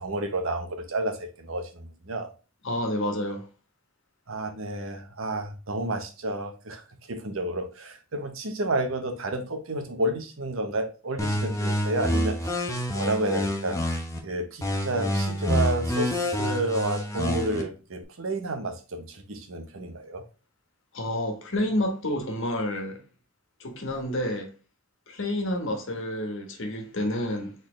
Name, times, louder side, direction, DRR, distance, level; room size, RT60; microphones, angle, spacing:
voice 1, 0.0-2.3 4.3-12.5 12.9-13.8 14.2-20.2, right 2 dB, 85° right, 1.0 m, -30 dB
voice 2, 2.6-3.5 20.9-23.0 23.6-24.5 25.1-27.5, left 1 dB, 65° left, 1.4 m, -29 dB
sound 1, 11.2-14.2 14.6-17.6, equal, 15° left, 0.9 m, -27 dB
4.3 x 3.9 x 3.1 m
head